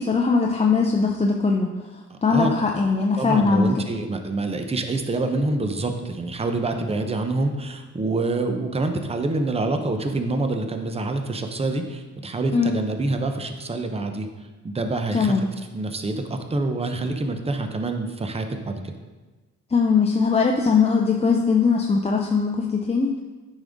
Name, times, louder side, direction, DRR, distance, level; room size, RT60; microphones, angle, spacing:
voice 1, 0.0-1.7 2.2-3.7 12.5-12.7 15.1-15.4 19.7-23.1, left 5 dB, 20° left, 0 dB, 0.6 m, -20 dB
voice 2, 2.1-2.5 3.1-14.3 14.6-15.4 15.7-18.8, right 2 dB, 20° right, 6 dB, 0.8 m, -26 dB
8.8 x 5.4 x 3.6 m, 1.2 s
cardioid pair, 90°, 30 cm